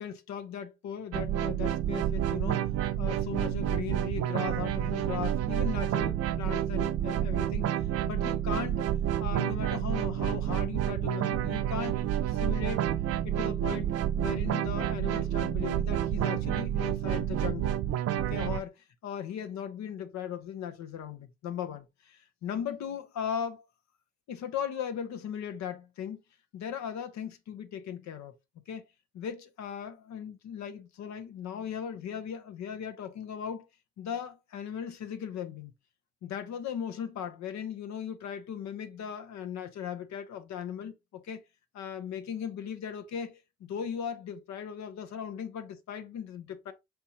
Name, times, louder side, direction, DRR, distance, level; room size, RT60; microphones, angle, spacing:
voice 1, 0.0-2.6 3.0-7.7 8.0-8.9 9.2-12.9 13.2-13.9 14.2-17.8 18.2-18.7 19.0-23.7 24.3-26.2 26.5-28.3 28.7-28.8 29.1-33.6 34.0-35.7 36.2-41.4 41.7-46.7, left 8 dB, 65° left, 0.8 m, -38 dB
sound 1, 1.1-18.6, right 11 dB, 55° right, 0.6 m, -29 dB
4.5 x 3.4 x 2.7 m
supercardioid pair, 70°, 30 cm